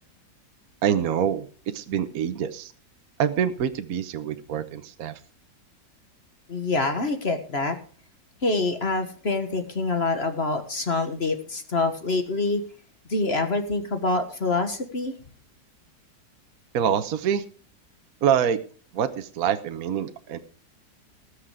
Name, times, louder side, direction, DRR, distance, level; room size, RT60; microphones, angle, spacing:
voice 1, 0.8-1.5 1.7-2.7 3.2-5.2 16.7-17.4 18.2-18.6 18.9-20.4, right 8 dB, 60° right, 9 dB, 1.2 m, -25 dB
voice 2, 6.5-7.8 8.4-12.6 13.1-15.1, left 3 dB, 35° left, 8 dB, 1.6 m, -26 dB
19.5 x 6.7 x 4.9 m, 0.41 s
omnidirectional pair, 2.0 m